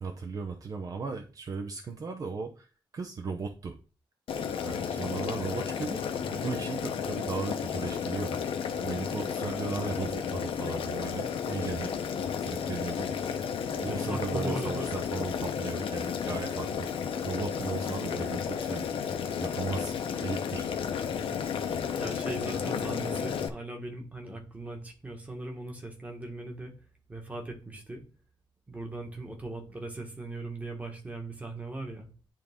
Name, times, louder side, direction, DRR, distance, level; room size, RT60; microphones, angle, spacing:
voice 1, 0.0-3.8 4.6-8.4 8.8-11.9 12.4-13.1 13.7-16.9 17.2-18.9 19.4-20.7, right 4 dB, 40° right, 5 dB, 0.6 m, -36 dB
Boiling, 4.3-23.5, left 7 dB, 80° left, 0.9 m, -32 dB
voice 2, 13.8-14.9 22.0-26.7 27.1-28.0 28.7-32.1, right 2 dB, 15° right, 2 dB, 1.5 m, -39 dB
10.0 x 3.5 x 3.6 m, 0.36 s
wide cardioid pair, 175°, 9 cm